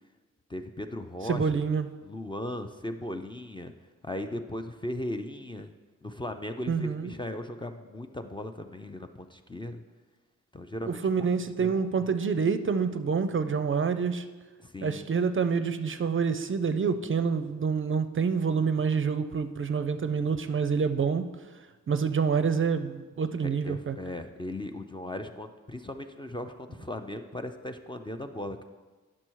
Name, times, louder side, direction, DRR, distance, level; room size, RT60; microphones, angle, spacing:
voice 1, 0.5-1.6 2.0-3.7 4.0-5.7 6.0-9.8 10.5-11.3 11.6-12.1 14.6-15.1 23.4-28.6, left 1 dB, 15° left, 6 dB, 0.4 m, -37 dB
voice 2, 1.3-1.9 6.7-7.1 10.9-14.2 14.8-21.3 21.9-24.0, right 5 dB, 45° right, 10 dB, 0.4 m, -27 dB
10.0 x 6.2 x 4.5 m, 1.3 s
wide cardioid pair, 130°, 30 cm